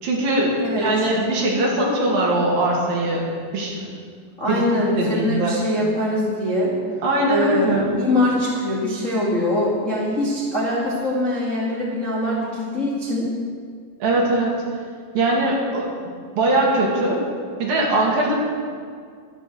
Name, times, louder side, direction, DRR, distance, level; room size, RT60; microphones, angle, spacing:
voice 1, 0.0-3.3 3.5-3.8 4.5-4.6 5.0-5.6 7.0-7.9 14.0-14.6 15.1-15.9 16.4-17.2 17.6-18.3, right 2 dB, 55° right, -3 dB, 3.5 m, -21 dB
voice 2, 4.4-6.7 7.3-13.3, left 1 dB, 50° left, -6 dB, 0.8 m, -23 dB
12.5 x 9.7 x 7.8 m, 2.1 s
omnidirectional pair, 5.7 m